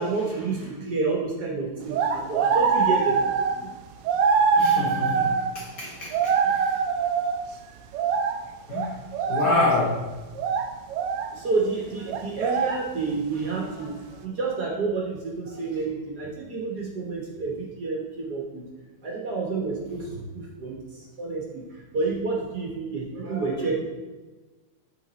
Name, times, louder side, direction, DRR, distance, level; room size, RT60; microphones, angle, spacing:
voice 1, 0.0-3.2 3.5-3.7 11.3-18.6 19.0-23.8, right 4 dB, 50° right, -2 dB, 1.6 m, -29 dB
sound 1, 1.9-3.6 4.0-5.6 6.1-7.4 7.9-8.4 8.7-9.6 10.4-11.3 12.1-12.8, right 5 dB, 85° right, 1.6 m, -23 dB
voice 2, 4.6-6.8 8.7-9.0 9.3-10.1, left 2 dB, 45° left, -3 dB, 1.5 m, -27 dB
7.1 x 5.3 x 4.1 m, 1.2 s
omnidirectional pair, 2.4 m